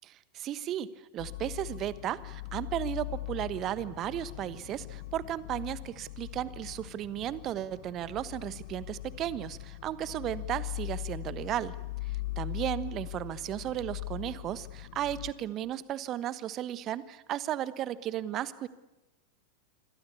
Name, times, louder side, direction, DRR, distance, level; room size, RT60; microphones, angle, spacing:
voice 1, 0.3-11.8 12.0-18.7, right 12 dB, 35° right, 16 dB, 1.2 m, -35 dB
sound 1, 1.2-15.3, left 18 dB, 50° left, 1.6 m, -40 dB
27.5 x 25.0 x 8.5 m, 0.99 s
figure-of-eight pair, 90°, 0 cm